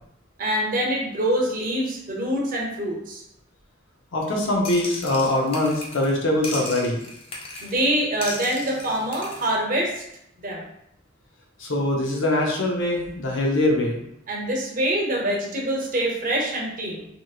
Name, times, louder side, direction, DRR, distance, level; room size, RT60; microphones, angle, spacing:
voice 1, 0.4-3.2 7.6-10.0 10.4-10.6 14.3-17.1, right 1 dB, 45° right, -2 dB, 0.7 m, -25 dB
voice 2, 4.1-7.0 11.6-14.0, left 1 dB, 75° left, 0 dB, 0.7 m, -23 dB
sound 1, 4.6-6.2 6.4-7.9 8.2-9.5, left 2 dB, 30° left, 0.5 m, -36 dB
2.9 x 2.7 x 2.3 m, 0.76 s
head